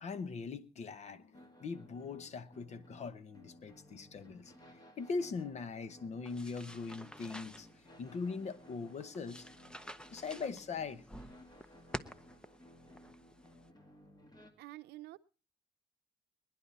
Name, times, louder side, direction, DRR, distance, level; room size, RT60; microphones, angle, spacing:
voice 1, 0.0-4.5 5.0-7.7 8.0-9.5 10.1-11.0, left 4 dB, 40° left, 0.9 m, -41 dB
sound 1, 1.3-14.5, equal, 25° left, 2.2 m, -58 dB
sound 2, 6.2-13.7, left 1 dB, 5° left, 0.7 m, -50 dB
voice 2, 14.6-15.2, right 17 dB, 80° right, 0.7 m, -48 dB
21.0 x 10.5 x 4.1 m
cardioid pair, 110°, 17 cm